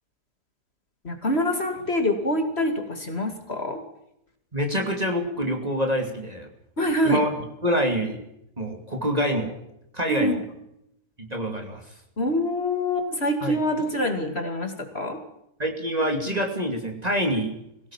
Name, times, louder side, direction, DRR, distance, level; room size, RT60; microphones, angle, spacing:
voice 1, 1.0-3.8 6.8-7.2 10.1-10.4 12.2-15.2, left 1 dB, 40° left, 5 dB, 2.7 m, -25 dB
voice 2, 4.5-6.5 7.0-7.3 7.6-8.2 8.6-9.5 9.9-10.4 11.2-11.8 13.4-13.6 15.6-17.5, equal, 25° right, 3 dB, 2.7 m, -26 dB
22.0 x 17.5 x 7.3 m, 0.79 s
omnidirectional pair, 1.7 m